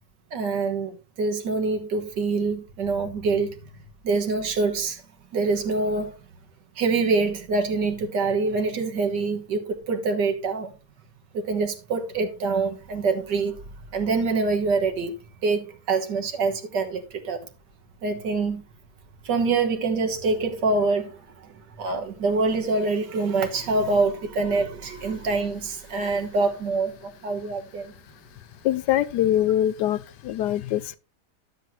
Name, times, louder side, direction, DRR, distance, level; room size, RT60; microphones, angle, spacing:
voice 1, 0.3-3.6 4.0-5.0 5.3-6.2 6.8-10.7 11.3-13.6 13.9-15.1 15.4-17.5 18.0-18.6 19.2-27.9, right 3 dB, 85° right, 2.0 m, -25 dB
voice 2, 28.6-31.0, left 12 dB, 80° left, 1.2 m, -23 dB
12.5 x 7.7 x 2.7 m
omnidirectional pair, 1.8 m